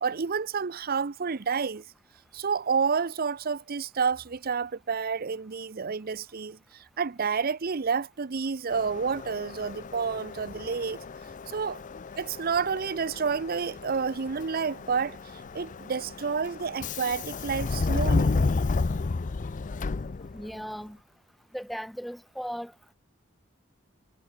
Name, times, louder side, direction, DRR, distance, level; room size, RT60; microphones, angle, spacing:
voice 1, 0.0-1.8 2.3-11.0 11.5-11.8 12.2-18.4, right 5 dB, 50° right, 0.6 m, -29 dB
Subway metro underground, 8.7-20.6, left 3 dB, 40° left, 0.5 m, -32 dB
voice 2, 20.3-21.0 21.5-22.7, equal, ahead, 1.8 m, -37 dB
head